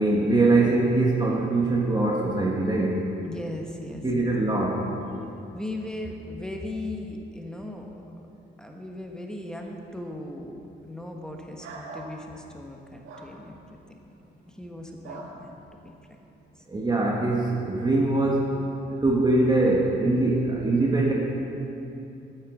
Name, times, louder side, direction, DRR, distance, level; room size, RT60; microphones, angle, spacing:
voice 1, 0.0-3.0 4.0-4.8 16.7-18.6 19.0-21.1, right 2 dB, 20° right, -2 dB, 1.4 m, -22 dB
voice 2, 3.2-4.3 5.5-8.0 8.6-13.6 14.5-16.2, left 1 dB, 5° left, 1 dB, 1.3 m, -38 dB
sound 1, 11.6-12.1 13.0-13.3 15.0-15.3, right 3 dB, 90° right, 1.8 m, -40 dB
9.1 x 8.7 x 7.1 m, 2.9 s
cardioid pair, 90°, 20 cm